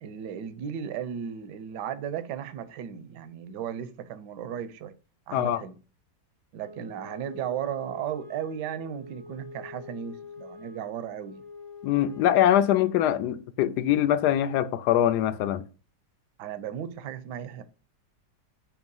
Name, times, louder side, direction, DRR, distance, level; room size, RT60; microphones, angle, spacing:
voice 1, 0.0-4.9 5.3-5.8 6.5-11.4 16.4-17.6, right 9 dB, 75° right, 1.2 m, -35 dB
Wind instrument woodwind instrument, 6.6-13.4, left 3 dB, 50° left, 1.4 m, -45 dB
voice 2, 11.8-15.6, left 11 dB, 70° left, 1.1 m, -23 dB
6.3 x 3.0 x 5.3 m
omnidirectional pair, 1.9 m